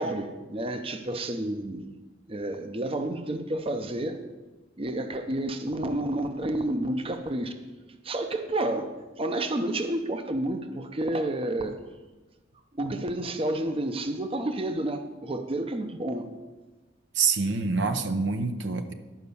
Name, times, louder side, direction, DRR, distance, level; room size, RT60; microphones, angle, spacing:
voice 1, 0.0-1.9 2.3-4.2 4.8-7.5 8.0-8.9 9.2-11.8 12.7-16.3, right 1 dB, 30° right, 7 dB, 0.7 m, -30 dB
voice 2, 17.1-18.9, right 4 dB, 70° right, 8 dB, 0.7 m, -26 dB
11.5 x 5.2 x 6.9 m, 1.2 s
head